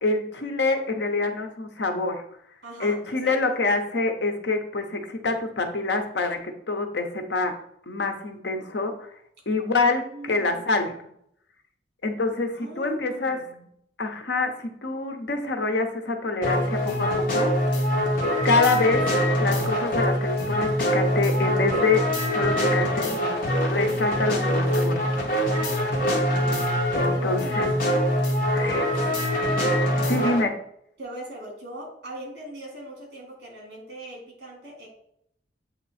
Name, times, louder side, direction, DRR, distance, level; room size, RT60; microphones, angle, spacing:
voice 1, 0.0-2.2 2.8-7.5 7.9-9.1 9.5-10.9 12.0-13.4 14.0-17.5 18.4-19.1 19.4-22.0 22.3-23.1 23.6-24.9 27.0-27.7 28.5-28.8 30.1-30.5, left 3 dB, 80° left, 5 dB, 0.9 m, -26 dB
voice 2, 2.6-3.4 9.8-10.8 12.6-13.6 27.0-28.2 28.5-28.8 30.1-30.3 31.0-34.9, right 1 dB, 65° right, -1 dB, 2.4 m, -40 dB
sound 1, 16.4-30.4, equal, 50° left, 1.3 m, -24 dB
7.8 x 2.9 x 4.2 m, 0.72 s
head